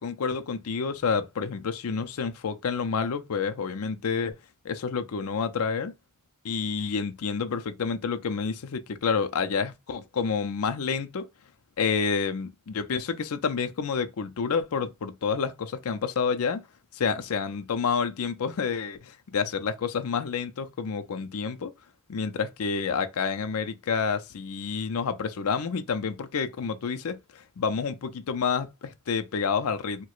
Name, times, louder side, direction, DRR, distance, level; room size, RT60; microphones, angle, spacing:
voice 1, 0.0-4.3 4.6-5.9 6.4-11.3 11.8-16.7 16.9-21.7 22.1-30.0, left 5 dB, 75° left, 0.5 m, -29 dB
4.4 x 2.1 x 2.4 m
head